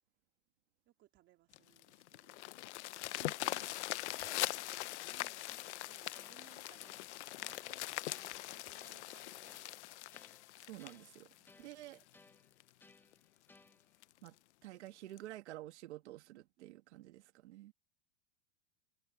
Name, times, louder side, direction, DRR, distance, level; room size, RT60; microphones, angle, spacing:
voice 1, 0.9-2.5 3.3-3.7 4.1-7.0 7.3-9.9 11.4-11.8 16.0-16.8, right 15 dB, 35° right, 3.0 m, -66 dB
sound 1, 1.5-12.0 12.6-12.7 13.1-13.2 13.6-13.7 14.0-14.3 15.2-15.3, left 17 dB, 80° left, 0.9 m, -42 dB
voice 2, 3.2-3.6 10.7-11.3 11.6-12.0 14.2-14.3 14.6-17.7, right 15 dB, 80° right, 1.7 m, -50 dB
sound 2, 5.5-14.1, left 3 dB, 5° left, 1.3 m, -66 dB
supercardioid pair, 150°, 34 cm